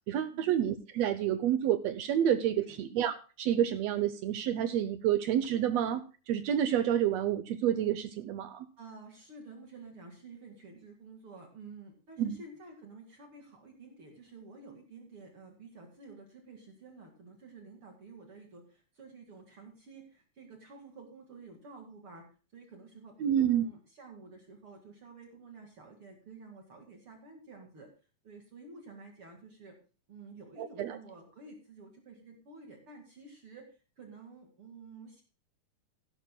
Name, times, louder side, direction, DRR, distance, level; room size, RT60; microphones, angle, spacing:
voice 1, 0.1-8.7 12.2-12.4 23.2-23.6 30.6-31.0, right 10 dB, 75° right, 11 dB, 1.6 m, -29 dB
voice 2, 8.8-22.2 22.5-27.9 28.2-29.7 30.1-33.7 34.0-35.2, right 3 dB, 45° right, 2 dB, 2.6 m, -51 dB
16.5 x 12.0 x 2.2 m, 0.36 s
omnidirectional pair, 3.7 m